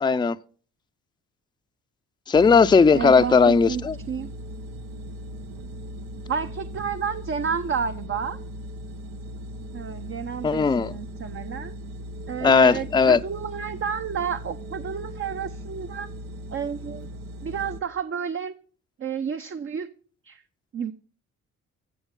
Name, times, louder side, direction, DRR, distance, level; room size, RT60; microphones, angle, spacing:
voice 1, 0.0-0.4 2.3-4.0 10.4-11.0 12.4-13.2, left 5 dB, 15° left, 0.5 m, -17 dB
sound 1, 2.3-17.8, equal, 90° right, 1.2 m, -38 dB
voice 2, 2.9-3.8 4.1-4.3 6.3-8.4 9.7-11.7 12.3-16.1 16.5-17.1 17.4-18.5 19.0-19.9 20.2-20.4 20.7-20.9, right 7 dB, 45° right, 0.7 m, -30 dB
15.5 x 6.4 x 5.3 m
cardioid pair, 90°, 30 cm